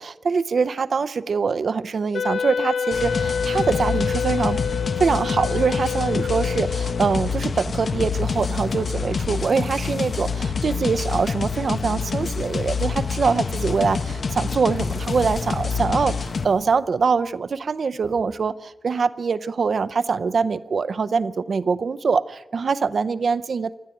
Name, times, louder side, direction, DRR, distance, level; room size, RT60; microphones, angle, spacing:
voice 1, 0.0-4.6 5.0-23.7, right 5 dB, 70° right, 14 dB, 0.6 m, -23 dB
Wind instrument woodwind instrument, 2.1-7.3, left 7 dB, 85° left, 0.8 m, -27 dB
sound 1, 2.9-16.4, left 5 dB, 65° left, 1.1 m, -26 dB
sound 2, 7.3-8.7 9.4-10.4 10.9-17.6 18.0-18.1, left 1 dB, 10° left, 4.6 m, -47 dB
26.5 x 12.0 x 9.0 m, 1.0 s
wide cardioid pair, 140°, 0 cm